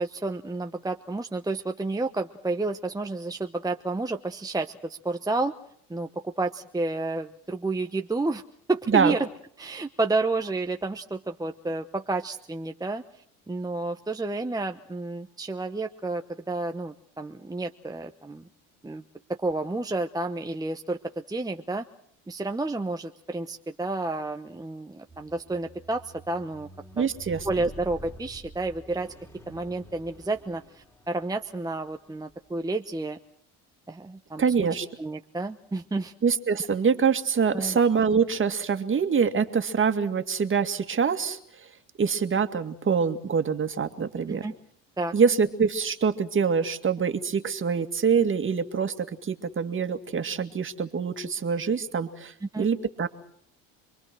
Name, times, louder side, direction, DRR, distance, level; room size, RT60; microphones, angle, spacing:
voice 1, 0.0-5.5 5.9-8.4 8.7-9.3 9.6-13.0 13.5-18.4 18.8-19.0 19.4-21.9 22.3-26.7 27.0-27.1 27.4-29.1 29.5-33.2 33.9-34.4 35.0-36.1 37.5-37.8 44.3-44.5 45.0-45.1 52.4-52.7, right 2 dB, 10° right, 5 dB, 1.1 m, -30 dB
Squeak, 25.1-31.4 32.2-32.3, equal, 5° left, 3.6 m, -47 dB
voice 2, 27.0-27.7 34.4-34.9 36.2-41.4 42.0-44.5 45.1-53.1, right 6 dB, 35° right, 8 dB, 2.3 m, -25 dB
27.5 x 22.0 x 6.2 m, 0.65 s
supercardioid pair, 80°, 36 cm